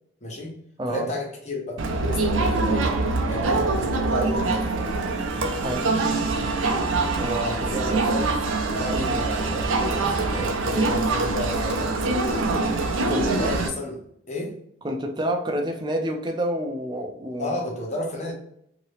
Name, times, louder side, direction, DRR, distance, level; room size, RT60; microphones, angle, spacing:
voice 1, 0.2-0.6 0.9-2.9 3.3-4.9 7.4-8.4 8.7-12.0 13.1-14.6 17.4-18.3, equal, 35° left, 0 dB, 0.8 m, -32 dB
voice 2, 0.8-1.1 5.4-5.9 7.2-7.8 8.9-9.2 13.1-13.3 14.8-17.6, right 1 dB, 20° right, 3 dB, 0.4 m, -28 dB
Crowd, 1.8-13.7, right 3 dB, 75° right, 0.5 m, -24 dB
2.8 x 2.8 x 3.1 m, 0.72 s
head